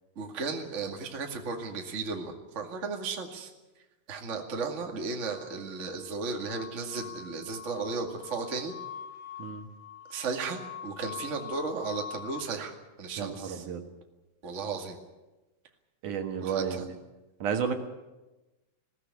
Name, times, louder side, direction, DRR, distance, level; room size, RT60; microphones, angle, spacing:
voice 1, 0.2-3.5 4.1-8.8 10.1-13.6 14.4-15.0 16.4-16.8, right 4 dB, 25° right, 2 dB, 2.0 m, -35 dB
sound 1, 5.3-12.4, left 8 dB, 65° left, 1.9 m, -44 dB
voice 2, 13.2-13.8 16.0-17.0 17.4-17.8, right 7 dB, 65° right, 5 dB, 2.9 m, -32 dB
20.5 x 16.0 x 9.6 m, 1.1 s
omnidirectional pair, 4.0 m